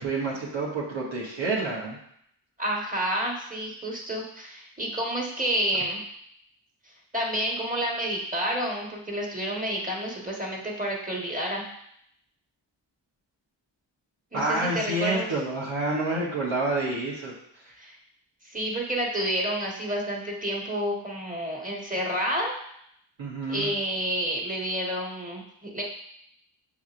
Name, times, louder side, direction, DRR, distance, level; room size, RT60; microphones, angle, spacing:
voice 1, 0.0-2.0 14.3-17.3 23.2-23.7, right 2 dB, 85° right, -6 dB, 1.0 m, -28 dB
voice 2, 2.6-6.0 7.1-11.7 14.3-15.3 17.8-17.9 18.5-22.5 23.5-25.8, right 1 dB, 15° right, -3 dB, 1.5 m, -29 dB
6.9 x 2.9 x 2.5 m, 0.72 s
cardioid pair, 45°, 47 cm